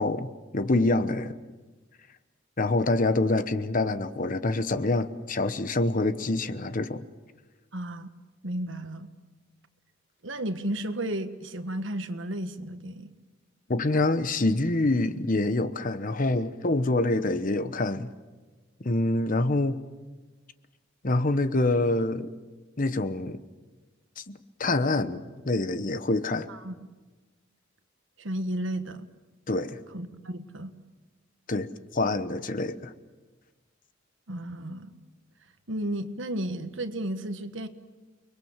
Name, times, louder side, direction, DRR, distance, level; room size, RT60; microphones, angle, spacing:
voice 1, 0.0-1.3 2.6-7.0 13.7-18.1 18.8-19.8 21.0-22.3 22.8-23.4 24.2-24.3 24.6-26.5 29.5-29.8 31.5-32.9, left 2 dB, 45° left, 1.0 m, -26 dB
voice 2, 7.7-8.1 8.4-9.1 10.2-13.1 26.5-26.7 28.2-29.1 29.9-30.7 34.3-34.9 35.7-37.7, right 1 dB, 70° right, 1.5 m, -33 dB
29.5 x 21.5 x 7.3 m
head